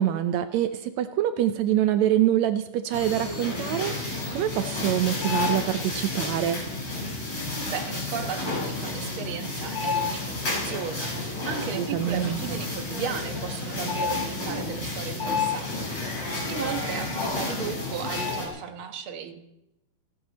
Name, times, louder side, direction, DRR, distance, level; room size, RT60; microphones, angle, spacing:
voice 1, 0.0-6.6 11.7-12.4, right 11 dB, 90° right, 10 dB, 1.5 m, -25 dB
sound 1, 2.9-18.5, left 3 dB, 30° left, 5.6 m, -30 dB
voice 2, 7.7-19.4, right 7 dB, 55° right, 6 dB, 1.6 m, -36 dB
29.5 x 12.0 x 4.2 m, 0.86 s
omnidirectional pair, 4.1 m